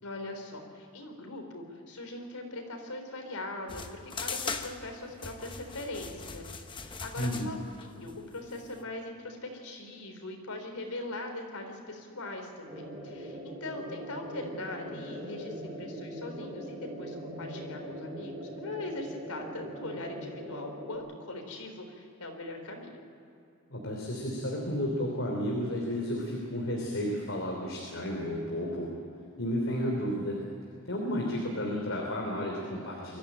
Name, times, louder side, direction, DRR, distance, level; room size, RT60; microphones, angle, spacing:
voice 1, 0.0-23.0, left 2 dB, 90° left, 3 dB, 3.9 m, -41 dB
sound 1, 3.7-8.8, left 4 dB, 20° left, 0.9 m, -40 dB
voice 2, 7.2-7.5 23.7-28.9 29.4-30.4 30.8-33.2, equal, 60° left, -1 dB, 3.2 m, -32 dB
sound 2, 12.7-21.0, equal, 25° right, 3.2 m, -41 dB
23.5 x 14.0 x 8.8 m, 2.7 s
head